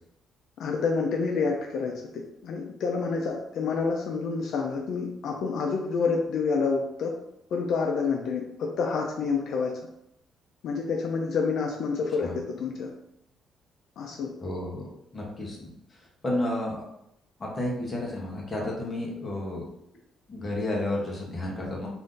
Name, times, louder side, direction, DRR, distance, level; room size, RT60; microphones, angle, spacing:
voice 1, 0.6-1.9 2.4-7.1 7.5-9.7 10.6-12.9 14.0-14.3, left 4 dB, 60° left, 1 dB, 0.4 m, -28 dB
voice 2, 14.4-15.7 16.2-17.0 17.4-19.6 20.3-21.9, left 1 dB, 20° left, -3 dB, 0.7 m, -31 dB
2.5 x 2.5 x 3.6 m, 0.79 s
cardioid pair, 170°, 0 cm